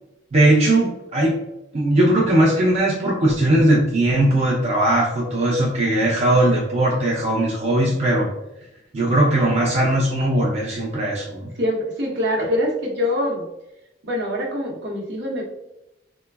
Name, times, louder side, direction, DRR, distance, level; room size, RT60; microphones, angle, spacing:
voice 1, 0.3-1.4 1.7-8.3 8.9-11.5, right 1 dB, 35° right, -3 dB, 0.4 m, -19 dB
voice 2, 11.6-13.5 14.0-15.5, left 1 dB, 60° right, -2 dB, 0.8 m, -24 dB
3.2 x 2.0 x 2.2 m, 0.89 s
head